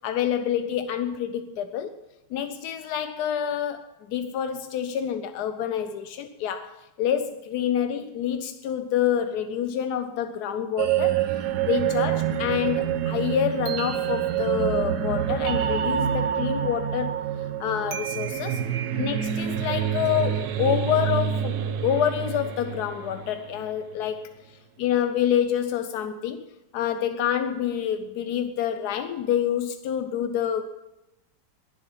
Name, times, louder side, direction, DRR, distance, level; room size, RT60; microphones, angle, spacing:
voice 1, 0.0-2.0 2.3-17.1 17.6-18.6 19.0-26.4 26.7-30.6, left 9 dB, 70° left, 9 dB, 0.9 m, -27 dB
sound 1, 10.8-23.8, right 9 dB, 60° right, 1.1 m, -27 dB
21.5 x 7.7 x 5.7 m, 0.98 s
omnidirectional pair, 2.2 m